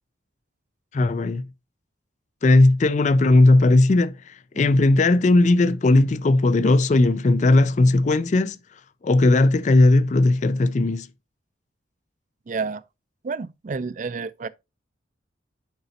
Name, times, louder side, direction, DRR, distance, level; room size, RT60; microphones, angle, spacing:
voice 1, 0.9-1.5 2.4-8.6 9.0-11.1, left 2 dB, 35° left, 0.4 m, -17 dB
voice 2, 12.5-12.8 13.2-14.5, right 4 dB, 40° right, 0.4 m, -30 dB
10.5 x 4.0 x 2.7 m
head